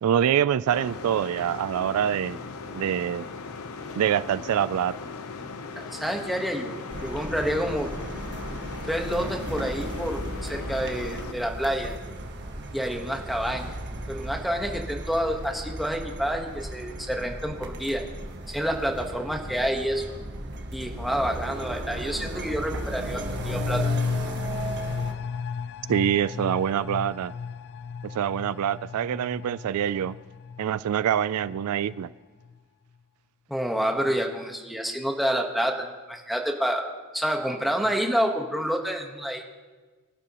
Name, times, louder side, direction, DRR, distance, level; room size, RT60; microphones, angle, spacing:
voice 1, 0.0-2.4 2.7-3.3 4.0-4.9 25.9-27.3 28.0-30.2 30.6-32.1, right 9 dB, 75° right, 0.3 m, -25 dB
sound 1, 0.7-11.3, left 4 dB, 70° left, 0.8 m, -38 dB
voice 2, 5.8-7.9 8.8-11.9 12.7-13.7 14.1-18.0 18.5-20.0 20.7-23.9 33.5-36.9 37.1-39.4, equal, ahead, 1.2 m, -28 dB
sound 2, 6.9-25.1, right 1 dB, 50° right, 1.5 m, -36 dB
sound 3, 22.7-32.1 32.4-32.5, left 5 dB, 50° left, 0.3 m, -34 dB
23.0 x 11.5 x 3.0 m
head